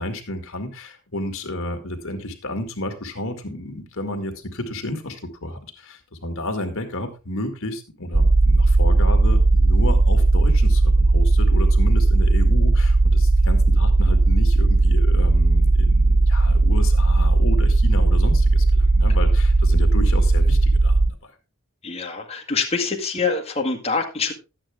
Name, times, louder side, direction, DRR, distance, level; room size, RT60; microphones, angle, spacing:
voice 1, 0.0-21.3, left 1 dB, 65° left, 5 dB, 2.2 m, -31 dB
sound 1, 8.1-21.1, right 2 dB, 30° right, 0.5 m, -17 dB
voice 2, 21.8-24.3, left 4 dB, 30° left, -1 dB, 1.8 m, -25 dB
12.5 x 9.0 x 3.6 m, 0.28 s
head